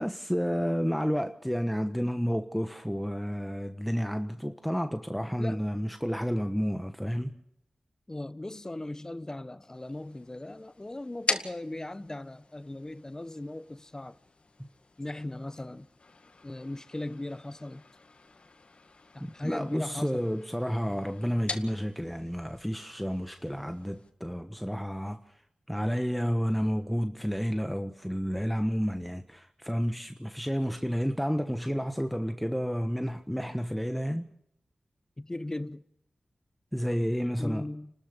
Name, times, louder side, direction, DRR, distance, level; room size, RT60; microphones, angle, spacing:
voice 1, 0.0-7.4 14.6-14.7 19.2-25.2 25.7-34.3 36.7-37.6, equal, ahead, 1.2 m, -30 dB
voice 2, 8.1-14.2 15.0-15.9 16.4-17.8 19.1-20.3 35.2-35.8 37.4-37.9, left 1 dB, 25° left, 1.1 m, -38 dB
sound 1, 9.7-24.1, left 3 dB, 60° left, 2.0 m, -42 dB
30.0 x 13.0 x 6.7 m
cardioid pair, 45°, 2 cm